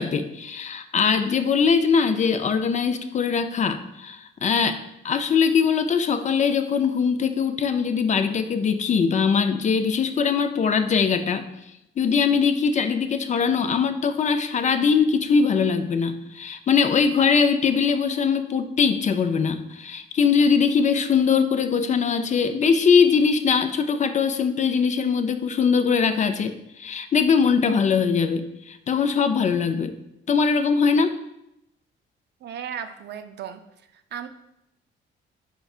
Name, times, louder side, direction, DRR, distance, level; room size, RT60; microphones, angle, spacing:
voice 1, 0.0-4.8 5.0-11.5 12.0-29.9 30.3-31.2, left 6 dB, 40° left, 9 dB, 0.4 m, -21 dB
voice 2, 32.4-33.6 34.1-34.3, right 8 dB, 60° right, 9 dB, 0.4 m, -35 dB
4.5 x 4.3 x 2.4 m, 0.83 s
cardioid pair, 90°, 20 cm